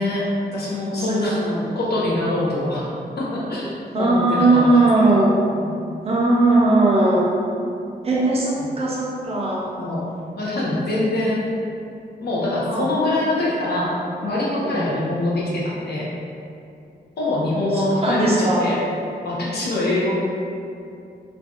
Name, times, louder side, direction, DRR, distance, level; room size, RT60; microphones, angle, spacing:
voice 1, 0.0-1.4 1.7-2.8 3.2-4.8 5.1-5.2 5.5-5.7 8.6-8.8 9.8-10.0 10.4-11.4 12.2-14.0 14.2-16.1 17.2-18.8 19.2-20.1, left 1 dB, 70° left, -6 dB, 0.7 m, -24 dB
voice 2, 0.9-1.6 3.9-5.4 6.0-7.3 8.0-9.7 12.7-12.9 14.6-15.0 17.7-18.7, right 2 dB, 35° right, -5 dB, 0.5 m, -19 dB
2.5 x 2.2 x 3.7 m, 2.6 s
wide cardioid pair, 175°, 17 cm